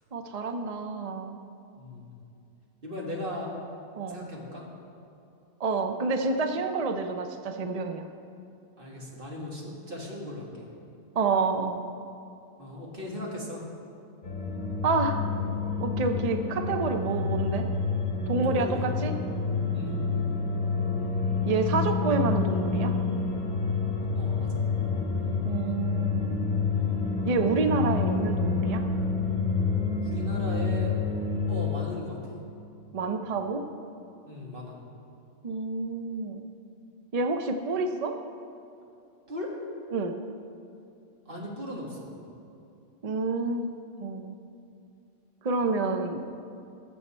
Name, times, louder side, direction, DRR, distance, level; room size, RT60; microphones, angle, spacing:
voice 1, 0.1-1.4 4.0-4.2 5.6-8.1 11.1-11.8 14.8-15.3 15.8-17.7 18.3-19.1 21.4-23.0 25.4-26.4 27.3-28.8 32.9-33.6 35.4-36.4 37.1-38.2 39.9-40.2 43.0-43.7 44.0-44.4 45.4-46.2, right 3 dB, 55° right, 6 dB, 0.4 m, -28 dB
voice 2, 1.8-2.1 2.8-3.5 4.1-4.7 8.8-10.7 12.6-13.6 18.4-18.9 19.7-20.0 24.1-24.5 30.0-30.9 31.5-32.4 34.3-34.7 39.3-39.6 41.3-42.0, left 1 dB, 40° right, -3 dB, 2.1 m, -37 dB
sound 1, 14.2-31.8, left 4 dB, 65° left, 2.3 m, -28 dB
19.0 x 7.2 x 4.3 m, 2.6 s
omnidirectional pair, 1.5 m